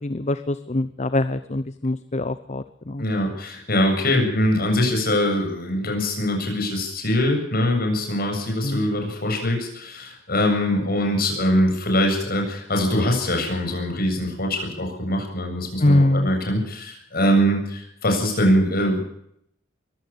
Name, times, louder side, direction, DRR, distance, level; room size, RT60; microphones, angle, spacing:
voice 1, 0.0-3.0 8.6-8.9 15.8-16.3, left 1 dB, 40° left, 13 dB, 0.8 m, -23 dB
voice 2, 3.0-19.0, left 1 dB, 55° left, 3 dB, 7.5 m, -22 dB
23.0 x 16.0 x 7.0 m, 0.72 s
head